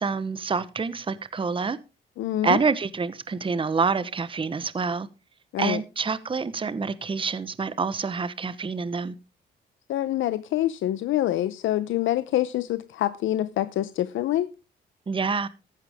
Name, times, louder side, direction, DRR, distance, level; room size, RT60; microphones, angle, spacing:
voice 1, 0.0-1.8 2.4-5.1 5.6-9.1 15.1-15.5, right 5 dB, 25° right, 1.0 m, -27 dB
voice 2, 2.2-2.6 5.5-5.8 9.9-14.5, left 13 dB, 80° left, 0.8 m, -26 dB
15.0 x 11.0 x 3.6 m
cardioid pair, 90°, 20 cm